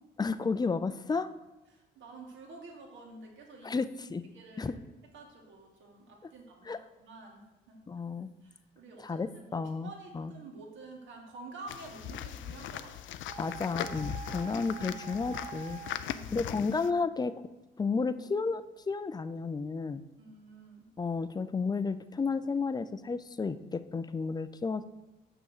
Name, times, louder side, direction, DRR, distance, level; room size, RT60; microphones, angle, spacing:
voice 1, 0.2-1.3 3.6-4.3 4.6-4.7 6.7-6.8 7.9-8.3 9.0-10.3 13.4-15.8 16.3-17.3 17.8-20.0 21.0-24.8, left 4 dB, 20° left, 13 dB, 0.5 m, -32 dB
voice 2, 1.7-3.8 4.3-4.8 5.1-7.8 8.4-9.2 9.5-13.2 15.9-16.3 20.2-20.9, right 3 dB, 70° right, 0 dB, 2.1 m, -49 dB
sound 1, 11.7-16.9, left 10 dB, 75° left, 0.5 m, -39 dB
sound 2, 13.3-16.0, right 9 dB, 35° right, 0.9 m, -46 dB
6.9 x 6.3 x 6.7 m, 1.1 s
cardioid pair, 90°, 20 cm